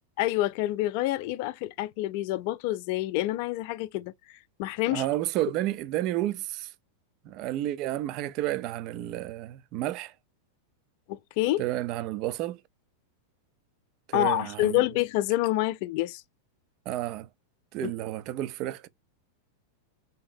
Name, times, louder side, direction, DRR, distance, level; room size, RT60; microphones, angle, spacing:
voice 1, 0.2-4.1 4.6-5.0 11.1-11.6 14.1-16.2 17.8-17.9, left 16 dB, 45° left, 0.3 m, -27 dB
voice 2, 4.9-6.7 7.2-10.1 11.6-12.6 14.1-14.8 16.9-17.3 17.7-18.9, right 14 dB, 40° right, 0.3 m, -31 dB
3.3 x 2.7 x 3.7 m
figure-of-eight pair, 90°, 0 cm